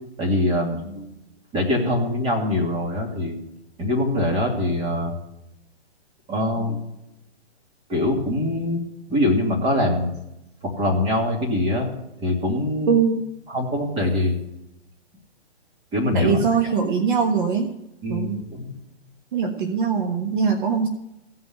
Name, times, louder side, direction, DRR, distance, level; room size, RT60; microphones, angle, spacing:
voice 1, 0.2-1.2 1.5-3.4 3.8-5.1 6.3-6.8 7.9-8.8 9.1-10.1 10.6-11.9 12.2-13.0 13.5-14.4 15.9-16.7 18.0-18.8, left 1 dB, 15° right, -1 dB, 2.7 m, -23 dB
voice 2, 12.9-13.2 16.1-17.7 18.1-18.4 19.3-20.9, right 6 dB, 45° right, 3 dB, 1.4 m, -21 dB
16.0 x 5.7 x 9.2 m, 0.87 s
hypercardioid pair, 150°, 34 cm